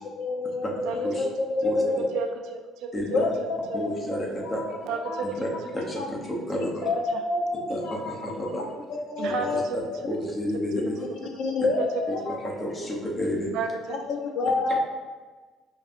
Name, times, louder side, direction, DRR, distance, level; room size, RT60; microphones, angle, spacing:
voice 1, 0.2-2.0 3.1-3.8 4.4-4.7 5.0-5.3 6.0-6.1 6.8-8.7 9.1-9.6 10.7-10.8 11.4-12.4 13.9-14.8, left 3 dB, 60° left, 1 dB, 0.6 m, -28 dB
voice 2, 2.1-2.9 3.7-3.8 4.9-5.3 7.1-7.2 9.2-9.6 13.5-14.0, right 5 dB, 80° right, 4 dB, 0.4 m, -31 dB
voice 3, 2.9-3.3 3.7-4.6 5.2-5.5 5.7-6.9 7.7-8.6 10.1-11.0 12.3-13.5, left 1 dB, 20° left, -2 dB, 0.8 m, -30 dB
5.2 x 2.5 x 2.5 m, 1.3 s
cardioid pair, 135°, 0 cm